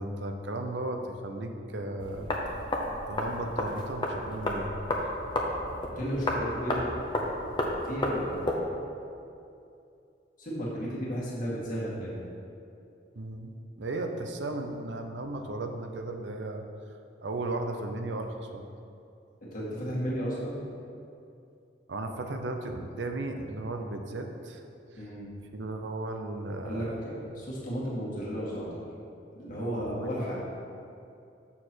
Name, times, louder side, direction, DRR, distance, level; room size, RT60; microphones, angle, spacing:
voice 1, 0.0-2.3 3.1-4.7 13.1-16.6 17.2-18.6 21.9-24.6 24.9-25.0 25.5-27.0 29.5-30.1, right 2 dB, 85° right, 5 dB, 0.7 m, -35 dB
sound 1, 2.0-8.6, left 1 dB, 25° left, 0.8 m, -32 dB
voice 2, 6.0-6.9 7.8-8.4 10.4-12.2 19.4-20.6 25.0-25.3 26.6-28.8 29.3-30.4, equal, 50° left, -6 dB, 2.1 m, -34 dB
7.1 x 6.7 x 4.5 m, 2.6 s
head